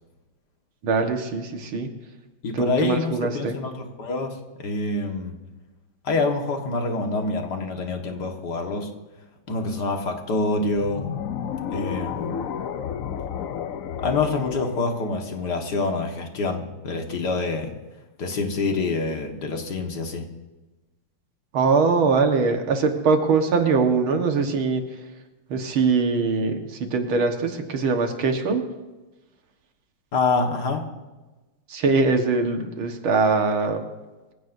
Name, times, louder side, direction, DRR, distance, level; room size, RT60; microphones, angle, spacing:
voice 1, 0.8-1.9 2.5-3.6 21.5-24.8 25.5-28.6 31.7-33.8, right 4 dB, 85° right, 5 dB, 2.3 m, -22 dB
voice 2, 2.4-5.4 6.0-8.9 9.5-11.1 11.7-12.4 14.0-17.7 18.2-20.3 30.1-30.9, left 3 dB, 55° left, 3 dB, 2.2 m, -26 dB
sound 1, 10.7-16.0, left 8 dB, 70° left, 0.7 m, -32 dB
24.0 x 16.0 x 2.7 m, 1.2 s
omnidirectional pair, 2.2 m